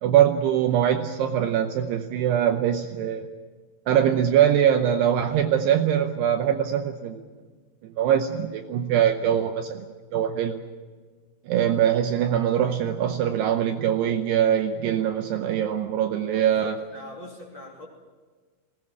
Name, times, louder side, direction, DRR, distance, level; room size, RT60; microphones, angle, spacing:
voice 1, 0.0-3.3 3.9-7.2 8.0-9.9 10.1-10.6 11.5-16.7, right 10 dB, 75° right, 6 dB, 2.6 m, -22 dB
voice 2, 16.3-17.9, left 1 dB, 30° left, -1 dB, 3.0 m, -42 dB
21.0 x 18.0 x 9.6 m, 1.4 s
omnidirectional pair, 5.5 m